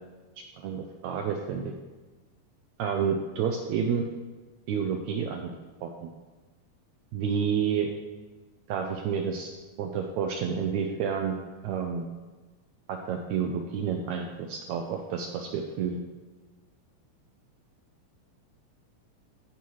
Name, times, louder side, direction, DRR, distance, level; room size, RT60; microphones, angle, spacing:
voice 1, 0.6-1.7 2.8-4.1 4.7-5.5 5.8-6.1 7.1-7.9 8.7-9.5 9.8-11.3 11.6-12.1 12.9-16.0, right 7 dB, 80° right, 3 dB, 1.7 m, -29 dB
15.0 x 5.5 x 3.1 m, 1.2 s
omnidirectional pair, 3.8 m